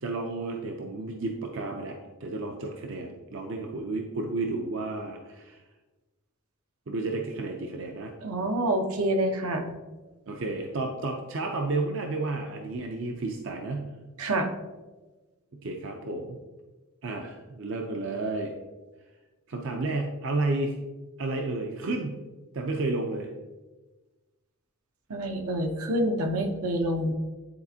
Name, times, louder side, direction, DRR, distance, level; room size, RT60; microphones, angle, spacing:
voice 1, 0.0-5.6 6.9-8.1 10.3-13.9 15.5-16.4 17.0-18.5 19.5-20.8 21.2-22.2 22.5-23.3, right 2 dB, 60° right, 3 dB, 0.5 m, -32 dB
voice 2, 8.2-9.7 14.2-14.5 25.1-27.1, right 1 dB, 80° right, 4 dB, 0.8 m, -27 dB
9.5 x 4.2 x 2.8 m, 1.2 s
head